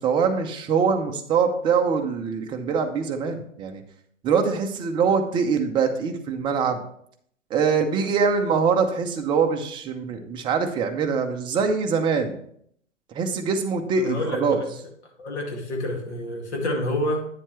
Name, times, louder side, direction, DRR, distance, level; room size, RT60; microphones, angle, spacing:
voice 1, 0.0-3.8 4.2-6.8 7.5-12.4 13.1-14.6, right 5 dB, 15° right, 4 dB, 0.6 m, -23 dB
voice 2, 14.0-14.7 15.2-17.3, left 1 dB, 60° left, 2 dB, 2.2 m, -28 dB
9.1 x 7.1 x 3.1 m, 0.67 s
figure-of-eight pair, 115°, 38 cm